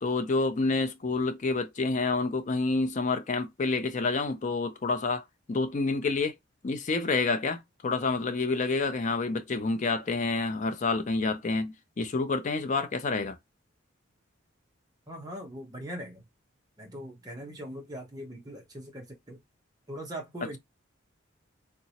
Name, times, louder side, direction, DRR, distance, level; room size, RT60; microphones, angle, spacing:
voice 1, 0.0-6.4 6.6-13.4, left 3 dB, 40° left, 0.5 m, -28 dB
voice 2, 15.1-16.2 16.8-19.4 19.9-20.6, equal, 20° right, 1.0 m, -41 dB
3.2 x 2.8 x 2.9 m
head